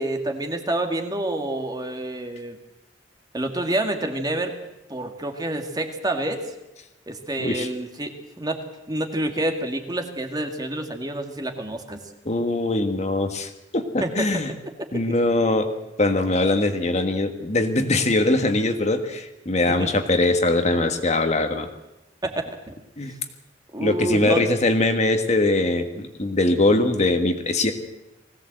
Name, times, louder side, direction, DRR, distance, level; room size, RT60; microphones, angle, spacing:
voice 1, 0.0-2.6 3.3-4.5 4.9-6.4 7.1-8.6 8.9-12.0 14.0-14.3 14.8-14.9 19.8-19.9 22.2-22.7 23.7-24.4, right 1 dB, 20° right, 4 dB, 2.0 m, -28 dB
voice 2, 7.4-7.7 12.2-14.5 14.9-15.7 16.0-21.7 23.0-23.1 23.8-27.7, left 2 dB, 40° left, 6 dB, 1.6 m, -22 dB
20.5 x 16.5 x 7.8 m, 0.96 s
head